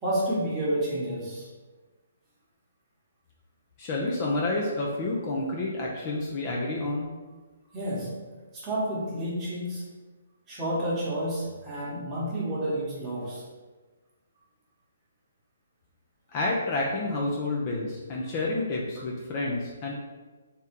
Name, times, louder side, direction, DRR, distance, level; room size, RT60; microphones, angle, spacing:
voice 1, 0.0-1.5 7.7-8.1 8.5-9.8 10.5-13.4, right 1 dB, 15° right, -7 dB, 1.1 m, -30 dB
voice 2, 3.8-7.1 16.3-19.9, left 2 dB, 25° left, -3 dB, 0.5 m, -29 dB
3.5 x 2.8 x 3.6 m, 1.3 s
hypercardioid pair, 160°, 0 cm